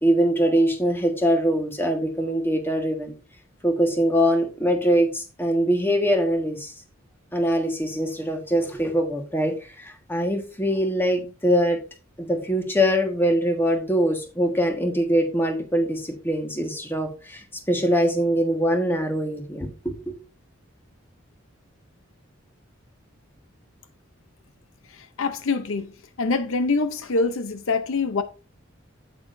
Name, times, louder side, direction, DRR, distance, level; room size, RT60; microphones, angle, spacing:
voice 1, 0.0-3.1 3.6-6.7 7.3-11.8 12.2-20.2, equal, 10° left, 1.5 m, -23 dB
voice 2, 25.2-25.9 26.2-28.2, left 3 dB, 80° left, 0.7 m, -24 dB
8.5 x 8.5 x 2.6 m
head